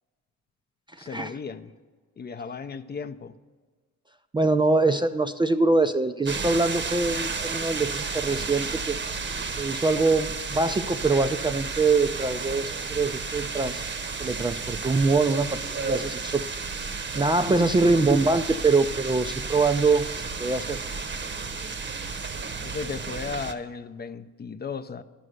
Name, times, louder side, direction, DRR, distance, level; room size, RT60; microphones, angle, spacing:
voice 1, 1.0-1.7 2.2-3.3 17.4-18.4 22.6-25.0, left 5 dB, 35° left, 11 dB, 0.5 m, -36 dB
voice 2, 4.3-9.0 9.6-13.9 14.2-16.4 17.1-20.8, right 3 dB, 15° right, 8 dB, 0.4 m, -24 dB
sound 1, 6.3-23.5, right 4 dB, 40° right, 0.8 m, -32 dB
11.0 x 6.3 x 7.9 m, 1.4 s
cardioid pair, 90°, 30 cm